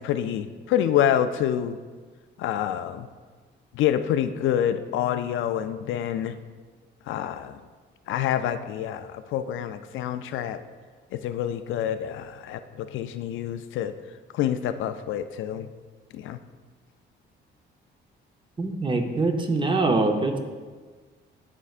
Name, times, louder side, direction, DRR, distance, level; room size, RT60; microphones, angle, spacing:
voice 1, 0.0-1.8 2.4-3.1 3.7-6.4 7.1-7.6 8.1-10.6 11.1-13.9 14.3-15.7 16.1-16.4, left 10 dB, 80° left, 10 dB, 0.4 m, -27 dB
voice 2, 18.6-20.4, right 3 dB, 25° right, 5 dB, 0.8 m, -23 dB
11.0 x 4.5 x 2.4 m, 1.4 s
cardioid pair, 90°, 20 cm